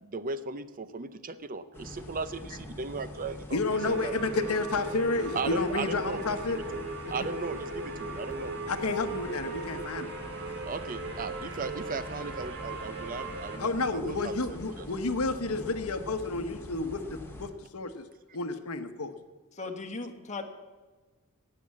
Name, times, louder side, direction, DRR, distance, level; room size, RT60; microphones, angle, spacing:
voice 1, 0.0-3.6 3.9-4.1 5.3-6.2 7.1-8.5 10.6-14.3 14.8-14.9, right 4 dB, 40° right, 13 dB, 0.6 m, -36 dB
sound 1, 1.7-17.5, left 1 dB, 10° left, 1.8 m, -44 dB
voice 2, 3.5-6.6 8.7-10.1 13.6-18.1 18.3-19.2, left 3 dB, 70° left, 9 dB, 1.0 m, -31 dB
sound 2, 3.7-13.6, right 2 dB, 55° right, 2.1 m, -38 dB
voice 3, 19.6-20.4, left 3 dB, 35° left, 3 dB, 1.4 m, -37 dB
18.0 x 6.9 x 7.4 m, 1.3 s
head